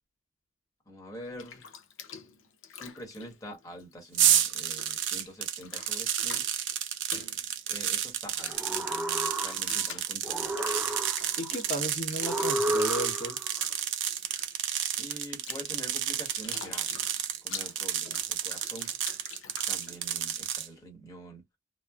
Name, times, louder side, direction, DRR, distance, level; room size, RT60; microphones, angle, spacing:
voice 1, 0.9-1.7 2.7-6.4 7.7-10.5 15.0-19.0 19.7-21.4, equal, 15° left, 1.1 m, -46 dB
Bathtub (filling or washing), 1.1-4.2 4.5-20.4, left 7 dB, 75° left, 0.6 m, -47 dB
sound 1, 4.2-20.7, right 10 dB, 65° right, 0.5 m, -31 dB
sound 2, 8.5-9.9 10.2-11.5 12.2-13.5, right 1 dB, 10° right, 0.3 m, -32 dB
voice 2, 11.4-13.4, equal, 40° left, 1.1 m, -34 dB
3.0 x 2.0 x 2.3 m
head